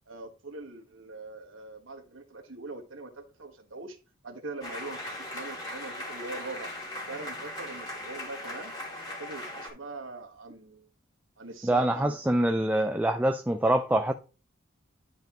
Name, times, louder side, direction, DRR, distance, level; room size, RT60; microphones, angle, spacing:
voice 1, 0.1-4.0 4.2-6.7 7.1-8.7 9.2-10.9 11.4-12.6, right 3 dB, 85° right, 1.5 m, -42 dB
sound 1, 4.6-9.7, left 1 dB, 20° left, 2.8 m, -39 dB
voice 2, 11.6-14.1, right 1 dB, 10° right, 0.4 m, -25 dB
11.5 x 5.2 x 3.0 m
head